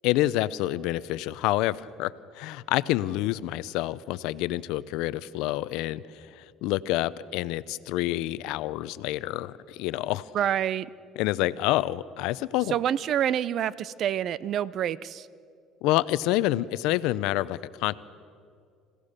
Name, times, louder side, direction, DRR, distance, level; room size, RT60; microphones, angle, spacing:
voice 1, 0.0-10.3 11.2-12.8 15.8-18.0, left 16 dB, 80° left, 17 dB, 0.6 m, -28 dB
voice 2, 10.3-10.9 12.7-15.3, right 10 dB, 55° right, 19 dB, 0.6 m, -27 dB
27.0 x 16.5 x 6.7 m, 2.3 s
cardioid pair, 110°, 0 cm